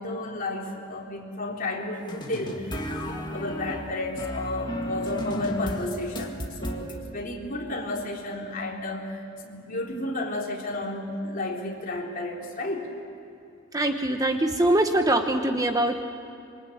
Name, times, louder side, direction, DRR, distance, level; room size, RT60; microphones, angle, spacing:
voice 1, 0.0-12.9, left 2 dB, 40° left, -1 dB, 3.7 m, -32 dB
sound 1, 2.1-7.0, equal, 20° left, 2.0 m, -34 dB
voice 2, 13.7-16.0, right 1 dB, 15° right, 5 dB, 1.1 m, -23 dB
26.5 x 24.5 x 8.6 m, 2.6 s
head